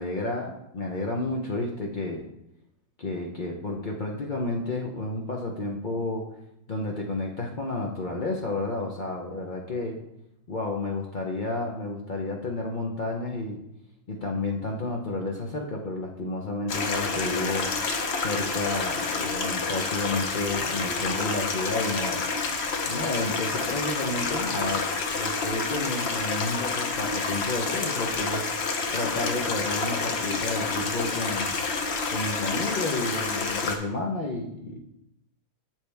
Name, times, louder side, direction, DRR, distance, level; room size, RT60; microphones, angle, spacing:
voice 1, 0.0-2.2 3.0-6.3 6.7-10.0 10.5-13.6 14.1-17.7 18.2-22.2 22.9-24.9 25.1-31.5 32.1-34.8, left 2 dB, 85° left, 0 dB, 0.4 m, -31 dB
Stream, 16.7-33.8, left 4 dB, 55° left, 0.7 m, -29 dB
7.5 x 7.1 x 3.4 m, 0.78 s
omnidirectional pair, 2.0 m